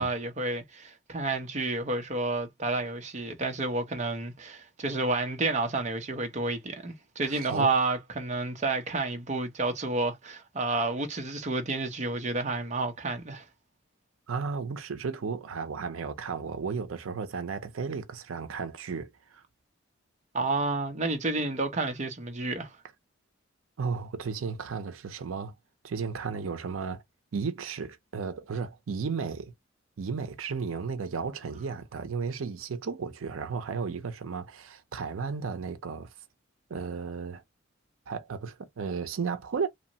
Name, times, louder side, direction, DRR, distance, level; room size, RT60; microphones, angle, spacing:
voice 1, 0.0-13.4 20.3-22.8, right 3 dB, 35° right, 0.6 m, -30 dB
voice 2, 7.2-7.7 14.3-19.4 23.8-25.5 25.8-27.0 27.3-29.5 30.0-36.1 36.7-37.4 38.1-39.7, right 5 dB, 90° right, 0.5 m, -34 dB
2.9 x 2.1 x 2.6 m
head